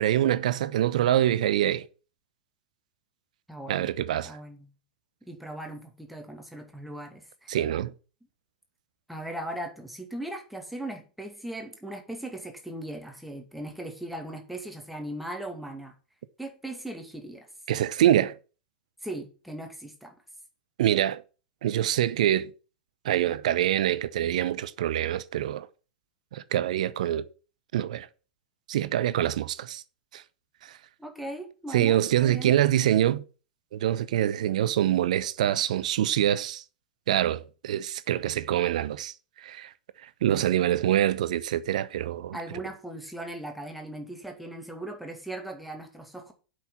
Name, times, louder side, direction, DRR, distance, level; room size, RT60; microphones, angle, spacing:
voice 1, 0.0-1.8 3.7-4.3 7.5-7.9 17.7-18.3 20.8-21.2 21.6-22.5 23.0-25.7 26.3-27.2 27.7-28.1 28.7-29.8 30.1-30.2 31.7-33.2 33.7-36.6 37.1-39.1 39.4-39.7 40.2-42.4, right 11 dB, 55° right, 0.8 m, -25 dB
voice 2, 3.5-3.9 4.2-4.7 5.2-7.6 9.1-15.9 16.4-17.5 19.0-20.1 31.0-32.6 42.3-46.3, right 1 dB, ahead, 2.4 m, -38 dB
8.1 x 6.2 x 7.4 m
figure-of-eight pair, 95°, 5 cm